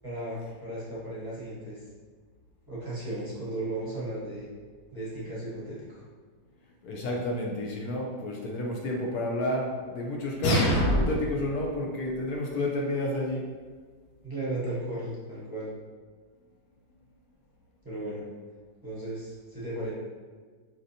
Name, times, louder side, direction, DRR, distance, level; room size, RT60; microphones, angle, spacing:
voice 1, 0.0-1.8 2.7-4.5 4.9-6.0 14.2-15.7 17.8-18.2 18.8-19.9, right 1 dB, 20° right, -9 dB, 0.7 m, -35 dB
voice 2, 6.8-13.5, left 1 dB, 65° left, -1 dB, 1.0 m, -30 dB
sound 1, 10.4-11.4, equal, 90° left, 1.6 m, -24 dB
5.1 x 3.0 x 2.7 m, 1.5 s
omnidirectional pair, 2.0 m